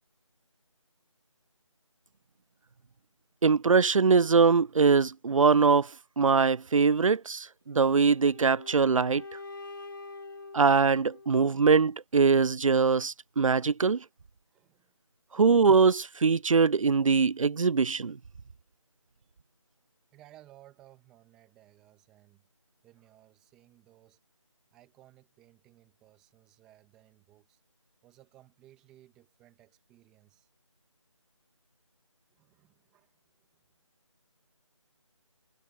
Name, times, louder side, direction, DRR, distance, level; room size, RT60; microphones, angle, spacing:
voice 1, 3.4-5.9 6.2-9.2 10.5-14.0 15.3-18.2, right 5 dB, 75° right, 0.5 m, -22 dB
sound 1, 7.7-11.7, left 3 dB, 40° left, 3.2 m, -45 dB
voice 2, 14.5-14.9 20.1-22.4 22.8-24.2 24.7-27.6 28.0-30.5 32.3-33.6, right 14 dB, 5° right, 1.3 m, -59 dB
figure-of-eight pair, 170°, 17 cm